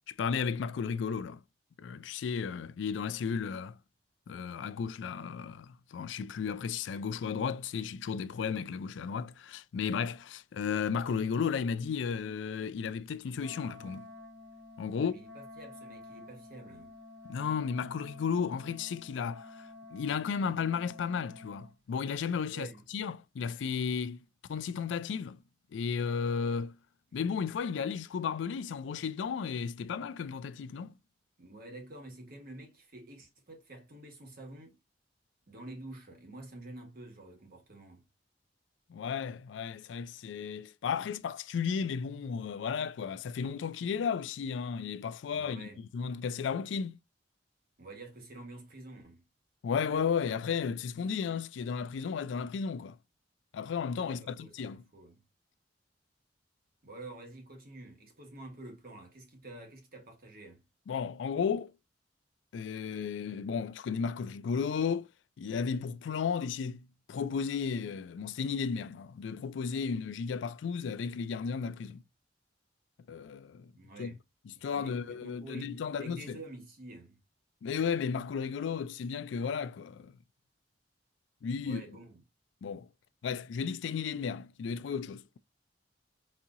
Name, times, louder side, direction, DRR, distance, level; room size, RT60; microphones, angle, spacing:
voice 1, 0.1-1.4 1.8-3.8 4.3-14.1 14.8-15.1 17.3-22.7 22.9-24.2 24.5-25.4 25.7-26.8 27.1-30.9 38.9-47.0 49.6-53.0 53.5-54.8 60.9-61.7 62.5-65.1 65.4-72.0 73.1-73.7 74.0-74.1 74.5-76.4 77.6-80.1 81.4-81.8 82.6-82.9 83.2-85.4, left 6 dB, 85° left, 0.3 m, -34 dB
Wind instrument woodwind instrument, 13.3-21.8, left 2 dB, 85° right, 2.4 m, -51 dB
voice 2, 14.9-16.9 22.5-22.8 31.4-34.7 35.5-38.0 45.3-45.8 47.8-49.2 54.2-55.2 56.8-60.6 73.7-74.2 74.5-77.2 81.6-82.2, right 2 dB, 55° right, 1.4 m, -48 dB
4.2 x 2.7 x 2.4 m
head